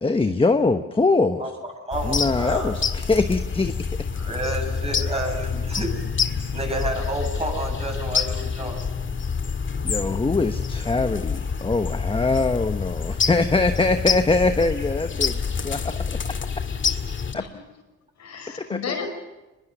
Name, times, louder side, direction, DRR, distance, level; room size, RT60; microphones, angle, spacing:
voice 1, 0.0-1.4 2.0-3.7 9.8-16.2 18.7-18.9, left 3 dB, 20° left, 7 dB, 1.1 m, -23 dB
voice 2, 1.4-2.7 4.1-5.9 6.5-8.8, right 1 dB, 20° right, 2 dB, 7.7 m, -30 dB
sound 1, 1.9-17.3, left 6 dB, 40° left, 1.9 m, -27 dB
voice 3, 9.4-10.0 15.9-16.0 17.3-17.5 18.2-19.2, left 5 dB, 65° left, 4 dB, 5.6 m, -35 dB
24.5 x 21.5 x 7.0 m, 1.1 s
cardioid pair, 90°, 30 cm